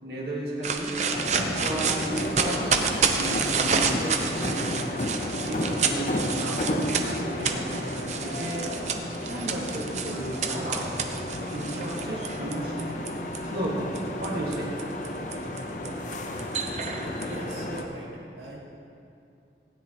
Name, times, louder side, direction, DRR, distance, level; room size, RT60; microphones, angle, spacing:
voice 1, 0.0-0.9 1.6-2.7 3.2-4.8 5.4-7.9 8.2-8.6 9.3-10.9 11.4-13.0 13.4-14.8, right 1 dB, 65° right, -5 dB, 1.9 m, -33 dB
sound 1, 0.6-13.4 14.0-17.8, right 6 dB, 40° right, 0.6 m, -30 dB
sound 2, 1.1-17.9, left 1 dB, 45° left, 0.7 m, -32 dB
voice 2, 17.2-18.6, right 1 dB, 90° right, -5 dB, 1.8 m, -39 dB
16.5 x 9.9 x 3.0 m, 2.6 s
head